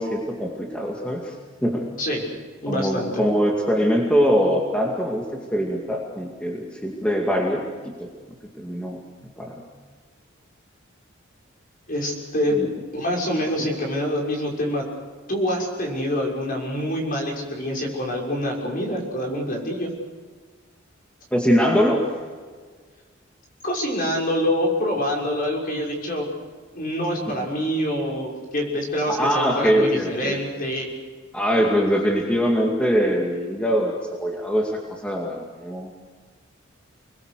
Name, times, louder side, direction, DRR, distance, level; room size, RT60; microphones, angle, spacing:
voice 1, 0.0-1.3 1.6-1.9 2.7-8.1 8.6-9.0 9.4-9.6 12.5-12.7 13.6-13.7 21.3-22.0 27.3-27.5 29.1-30.4 31.3-35.9, equal, 5° left, -1 dB, 2.3 m, -23 dB
voice 2, 2.6-3.2 11.9-12.6 12.9-14.8 15.3-19.9 21.9-22.0 23.6-26.3 26.7-30.9, equal, 45° left, -1 dB, 6.2 m, -26 dB
29.5 x 21.0 x 6.7 m, 1.5 s
head